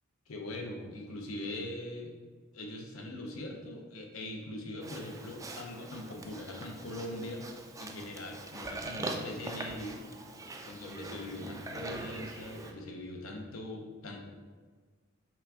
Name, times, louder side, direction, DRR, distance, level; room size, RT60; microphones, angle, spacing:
voice 1, 0.3-2.1 2.5-7.5 7.8-10.0 10.6-14.2, left 1 dB, 85° left, 1 dB, 0.7 m, -41 dB
Livestock farm animals working animals, 4.8-12.7, right 2 dB, 15° right, 0.3 m, -42 dB
5.8 x 2.5 x 3.5 m, 1.5 s
head